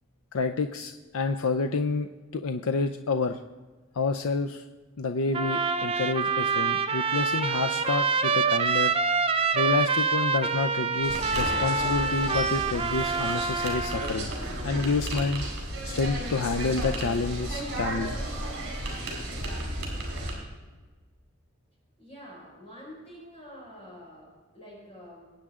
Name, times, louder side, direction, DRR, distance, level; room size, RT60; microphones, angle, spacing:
voice 1, 0.3-2.1 2.3-3.4 3.9-4.6 5.0-8.9 9.5-14.3 14.6-15.4 15.8-18.1, left 4 dB, 80° left, 6 dB, 0.5 m, -29 dB
Trumpet, 5.3-14.1, right 5 dB, 25° right, 0.5 m, -26 dB
sound 1, 11.0-20.3, right 1 dB, 55° right, 4.2 m, -33 dB
voice 2, 22.0-25.3, equal, 30° left, -5 dB, 5.2 m, -47 dB
22.0 x 8.8 x 3.7 m, 1.3 s
head